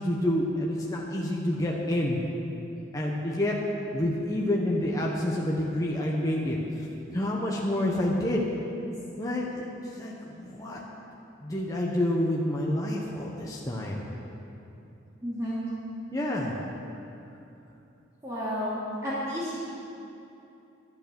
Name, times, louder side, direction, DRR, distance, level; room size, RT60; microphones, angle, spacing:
voice 1, 0.0-2.2 2.9-3.5 3.9-6.6 7.1-8.4 9.2-10.8 11.4-14.1 16.1-16.5, left 1 dB, 20° left, -3 dB, 1.1 m, -28 dB
voice 2, 15.2-15.6 18.2-19.6, equal, 15° right, -10 dB, 2.6 m, -31 dB
11.5 x 10.5 x 7.0 m, 2.8 s
head